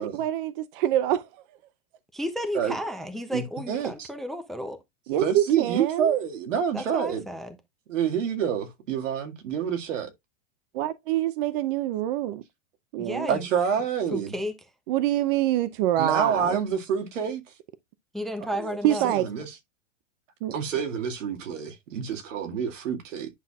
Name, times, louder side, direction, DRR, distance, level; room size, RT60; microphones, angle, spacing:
voice 1, 0.0-1.4 5.1-6.2 10.7-12.4 12.9-13.3 14.9-16.6 18.8-19.2 20.4-20.6, right 12 dB, 45° right, 0.7 m, -25 dB
voice 2, 2.1-4.8 6.7-7.6 13.0-13.5 14.1-14.5 18.1-19.1, equal, ahead, 0.5 m, -33 dB
voice 3, 3.3-4.1 5.2-7.2 7.9-10.1 13.3-14.4 16.0-17.4 18.6-18.8 19.0-19.5 20.5-23.3, right 7 dB, 85° right, 2.1 m, -27 dB
9.8 x 5.7 x 2.3 m
supercardioid pair, 155°, 37 cm